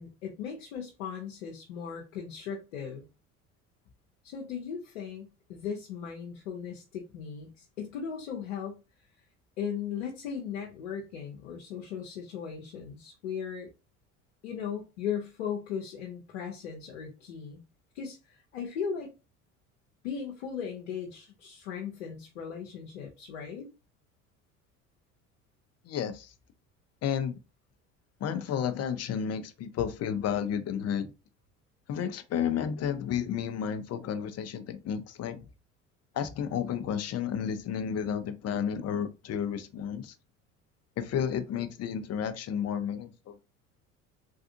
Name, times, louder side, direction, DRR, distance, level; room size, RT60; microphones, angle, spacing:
voice 1, 0.0-3.1 4.2-8.8 9.6-13.7 14.4-17.6 17.9-19.1 20.0-23.7, left 7 dB, 90° left, 0.8 m, -37 dB
voice 2, 25.8-26.3 27.0-27.4 28.2-31.1 31.9-35.4 36.1-40.1 41.0-43.4, left 8 dB, 45° left, 0.7 m, -32 dB
3.5 x 2.4 x 2.7 m
hypercardioid pair, 70°, 36 cm